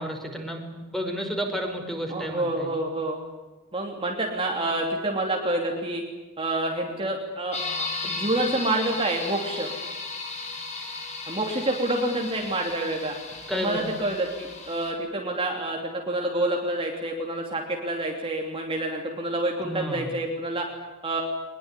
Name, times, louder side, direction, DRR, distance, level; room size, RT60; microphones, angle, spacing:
voice 1, 0.0-2.7 13.5-13.9 19.6-20.1, equal, ahead, 3 dB, 5.1 m, -31 dB
voice 2, 2.1-3.2 3.7-6.0 6.4-9.7 11.3-13.1 13.5-20.7 21.0-21.2, right 1 dB, 25° right, 0 dB, 3.1 m, -28 dB
sound 1, 7.5-14.9, left 3 dB, 30° left, 5.1 m, -35 dB
23.5 x 21.5 x 10.0 m, 1.2 s
head